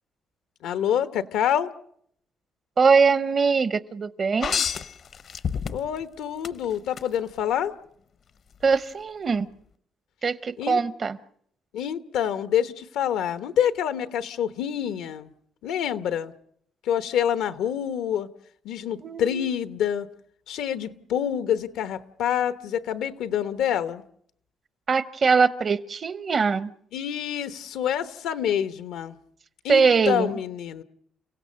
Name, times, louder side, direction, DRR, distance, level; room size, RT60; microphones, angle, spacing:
voice 1, 0.6-1.7 5.7-7.7 10.6-10.8 11.7-15.3 15.6-16.3 16.8-18.3 18.6-20.1 20.5-24.0 26.9-29.2 29.6-30.8, left 9 dB, 90° left, 1.0 m, -27 dB
voice 2, 2.8-4.6 8.6-9.5 10.2-11.2 19.0-19.5 24.9-26.7 29.7-30.3, right 5 dB, 45° right, 0.9 m, -22 dB
sound 1, 4.4-6.0 6.4-7.1 8.6-8.8, left 7 dB, 55° left, 0.8 m, -28 dB
30.0 x 16.5 x 6.4 m
cardioid pair, 90°, 0 cm